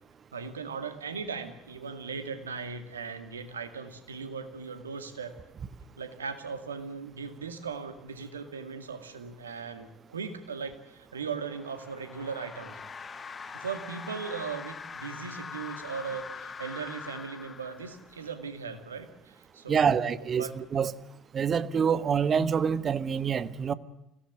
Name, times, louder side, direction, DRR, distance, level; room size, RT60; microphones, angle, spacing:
voice 1, 0.3-5.4 6.0-12.7 13.5-20.5, right 5 dB, 90° right, 2.3 m, -38 dB
sound 1, 11.2-18.3, left 5 dB, 30° left, 1.6 m, -43 dB
voice 2, 19.7-20.9 21.3-23.7, right 7 dB, 40° right, 1.4 m, -26 dB
25.5 x 17.5 x 9.3 m
hypercardioid pair, 60°, 0 cm